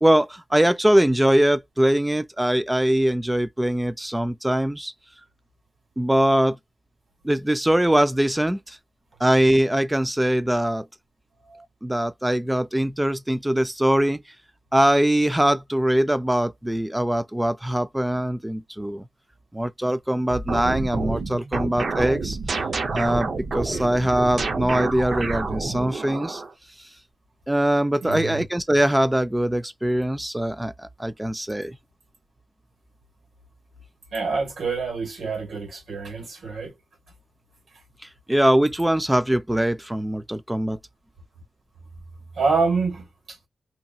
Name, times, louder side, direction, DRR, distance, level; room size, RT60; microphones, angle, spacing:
voice 1, 0.0-4.9 6.0-6.6 7.2-8.8 9.2-10.9 11.8-14.2 14.7-19.1 19.5-22.6 22.9-26.4 27.5-31.8 38.3-40.8, right 1 dB, 10° right, 0.3 m, -22 dB
sound 1, 20.3-26.5, right 4 dB, 55° right, 0.6 m, -28 dB
voice 2, 28.0-28.4 34.1-36.7 42.3-43.5, right 4 dB, 90° right, 1.6 m, -27 dB
2.8 x 2.6 x 2.3 m
wide cardioid pair, 115°, 0 cm